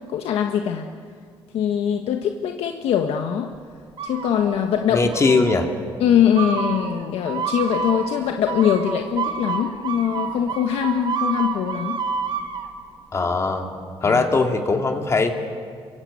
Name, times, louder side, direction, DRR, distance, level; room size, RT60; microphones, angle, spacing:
voice 1, 0.1-0.9 1.5-3.5 4.0-5.1 6.0-12.0 14.0-14.2, left 9 dB, 85° left, 4 dB, 1.4 m, -22 dB
sound 1, 4.0-4.7 5.1-5.7 6.4-12.7, right 6 dB, 55° right, 2.4 m, -29 dB
voice 2, 4.9-5.7 13.1-13.7 14.0-15.3, left 3 dB, 30° left, 4 dB, 2.4 m, -20 dB
28.0 x 24.0 x 8.5 m, 2.1 s
cardioid pair, 130°, 10 cm